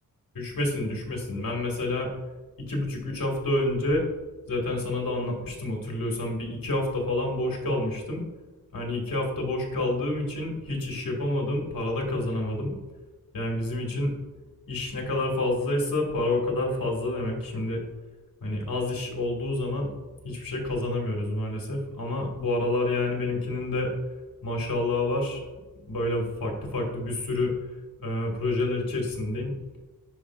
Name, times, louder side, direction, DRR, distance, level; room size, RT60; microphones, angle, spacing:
voice 1, 0.3-2.1 2.6-4.0 4.5-8.2 8.7-12.8 13.3-14.1 14.7-17.8 18.4-19.9 20.2-23.9 24.4-25.4 25.9-27.5 28.0-29.5, left 2 dB, 65° left, 0 dB, 1.8 m, -28 dB
10.0 x 5.1 x 2.4 m, 1.2 s
wide cardioid pair, 160°, 36 cm